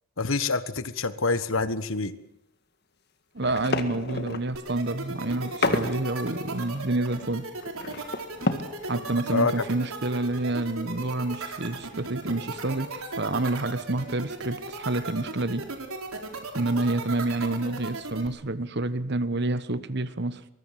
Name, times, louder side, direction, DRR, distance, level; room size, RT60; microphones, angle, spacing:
voice 1, 0.2-2.1 9.3-9.5, left 3 dB, 70° left, 14 dB, 1.4 m, -26 dB
voice 2, 3.3-7.4 8.9-15.6 16.5-20.4, right 2 dB, 50° right, 14 dB, 1.3 m, -28 dB
sound 1, 3.4-4.6 5.2-6.0 6.4-6.5 6.7-8.9 9.2-9.3 9.6-9.7 10.0-10.1 11.7-12.2 12.7-12.9 13.2-13.5, left 2 dB, 50° left, 1.9 m, -31 dB
sound 2, 4.5-18.3, right 3 dB, 80° right, 4.2 m, -36 dB
24.5 x 22.0 x 7.5 m, 0.81 s
head